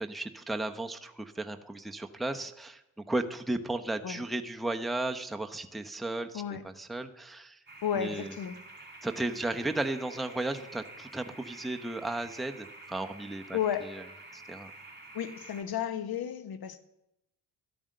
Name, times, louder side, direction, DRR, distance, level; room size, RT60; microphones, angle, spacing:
voice 1, 0.0-2.8 3.1-7.6 7.9-8.3 9.0-13.6 14.3-14.7, right 2 dB, ahead, 5 dB, 0.9 m, -34 dB
voice 2, 6.3-6.7 7.8-8.6 13.5-13.9 15.1-16.8, left 9 dB, 55° left, 12 dB, 1.2 m, -33 dB
sound 1, 7.7-15.6, right 2 dB, 25° right, 3.1 m, -49 dB
12.5 x 8.7 x 6.5 m, 0.88 s
supercardioid pair, 55°, 44 cm